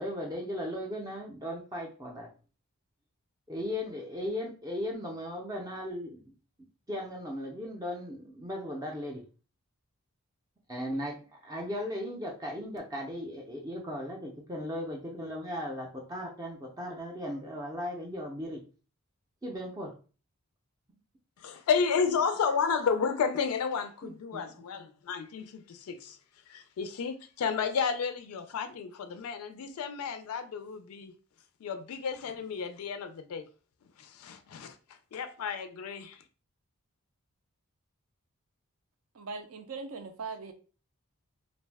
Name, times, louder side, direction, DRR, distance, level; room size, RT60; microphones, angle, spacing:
voice 1, 0.0-2.3 3.5-6.3 6.9-9.2 10.7-11.2 11.4-18.6 19.4-19.9 24.0-24.5, left 1 dB, 15° right, 0.4 m, -37 dB
voice 2, 21.4-26.2 26.5-31.1 31.6-33.4 34.0-34.8 35.1-36.2, left 6 dB, 75° left, 0.3 m, -32 dB
voice 3, 39.1-40.5, right 4 dB, 70° right, 0.5 m, -40 dB
2.5 x 2.1 x 3.3 m
head